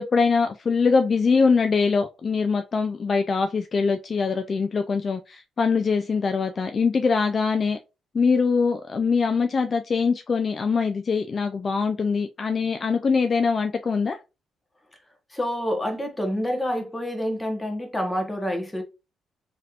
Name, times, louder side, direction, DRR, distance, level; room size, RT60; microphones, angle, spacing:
voice 1, 0.0-7.8 8.1-14.2, left 5 dB, 40° left, 0.3 m, -23 dB
voice 2, 15.3-18.8, equal, 10° left, 1.0 m, -27 dB
3.1 x 2.8 x 2.4 m
cardioid pair, 90°, 0 cm